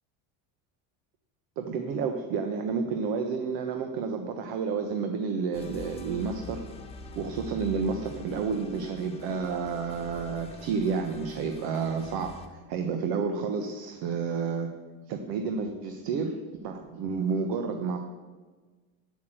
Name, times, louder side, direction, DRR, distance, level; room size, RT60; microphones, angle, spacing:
voice 1, 1.6-6.6 7.2-14.7 15.1-16.3 16.6-18.0, right 5 dB, 65° right, 5 dB, 1.2 m, -30 dB
sound 1, 5.5-12.5, left 3 dB, 15° left, 1.5 m, -45 dB
8.5 x 8.4 x 9.1 m, 1.3 s
cardioid pair, 145°, 40 cm